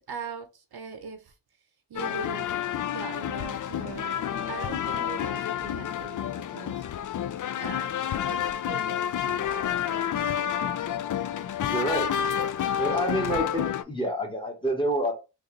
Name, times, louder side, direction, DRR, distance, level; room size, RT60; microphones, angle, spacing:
voice 1, 0.1-1.3 1.9-2.5 2.8-6.8 7.6-7.9 8.3-10.1, right 5 dB, 55° right, 0.8 m, -41 dB
sound 1, 2.0-13.8, left 9 dB, 45° left, 0.4 m, -29 dB
voice 2, 11.7-12.2 12.8-15.1, right 1 dB, 10° left, 1.3 m, -28 dB
3.3 x 2.5 x 3.1 m
supercardioid pair, 45°, 46 cm